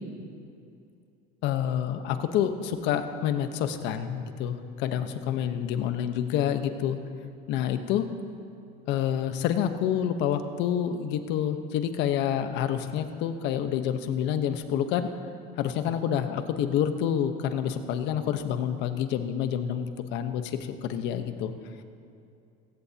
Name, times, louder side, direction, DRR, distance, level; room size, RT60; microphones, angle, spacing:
voice 1, 1.4-7.0 7.5-8.1 8.9-15.1 15.6-21.5, left 9 dB, 65° left, 8 dB, 1.2 m, -28 dB
21.5 x 16.5 x 3.0 m, 2.6 s
supercardioid pair, 115°, 20 cm